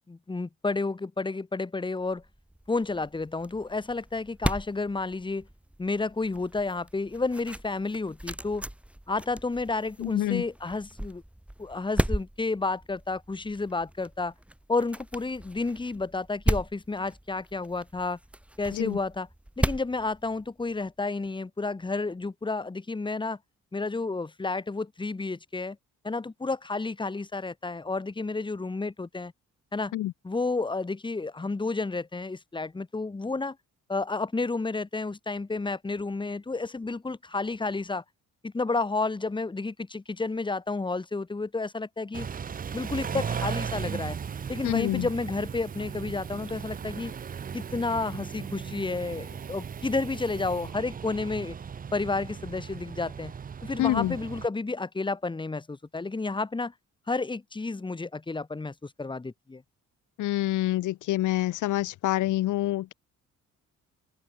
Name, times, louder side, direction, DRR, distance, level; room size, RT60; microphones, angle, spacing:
voice 1, 0.0-2.2 2.7-5.5 5.8-8.6 9.1-11.2 11.6-14.3 14.7-18.2 18.6-19.3 19.6-23.4 23.7-25.8 26.0-29.3 29.7-29.9 30.2-33.6 33.9-38.0 38.4-42.3 42.7-44.2 44.5-47.1 47.5-51.5 51.9-53.3 53.6-56.7 57.1-59.6, left 3 dB, 15° left, 1.3 m, -31 dB
sound 1, 2.1-20.9, right 1 dB, 5° right, 1.4 m, -36 dB
voice 2, 10.0-10.4 18.7-19.0 29.9-30.1 44.6-45.1 53.8-54.2 60.2-62.9, left 15 dB, 80° left, 1.3 m, -27 dB
Car / Idling / Accelerating revving vroom, 42.1-54.5, right 7 dB, 30° right, 0.6 m, -37 dB
Buzz, 42.4-50.7, right 13 dB, 75° right, 4.2 m, -52 dB
open air
cardioid pair, 90°, 30 cm